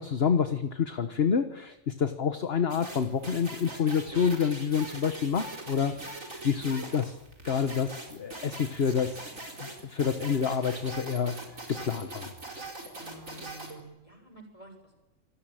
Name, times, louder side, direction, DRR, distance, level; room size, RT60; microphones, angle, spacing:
voice 1, 0.0-7.2 7.4-9.2 9.6-11.4 11.7-12.3, left 6 dB, 50° left, 8 dB, 1.4 m, -28 dB
sound 1, 2.7-13.8, right 2 dB, 85° right, 5.0 m, -42 dB
voice 2, 12.9-15.0, right 1 dB, 25° left, 4 dB, 6.6 m, -50 dB
27.5 x 21.0 x 9.1 m, 1.0 s
omnidirectional pair, 1.3 m